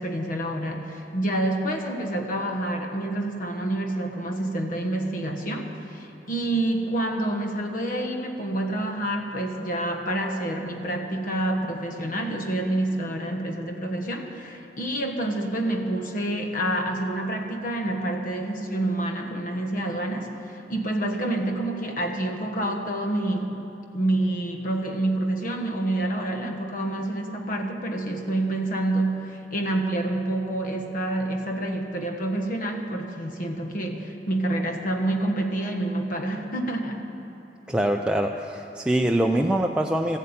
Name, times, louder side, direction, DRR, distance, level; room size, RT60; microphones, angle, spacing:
voice 1, 0.0-23.6 23.9-37.0, right 1 dB, 50° left, 3 dB, 1.2 m, -28 dB
voice 2, 37.7-40.2, right 1 dB, 5° right, 2 dB, 0.4 m, -24 dB
14.0 x 8.4 x 8.7 m, 2.9 s
head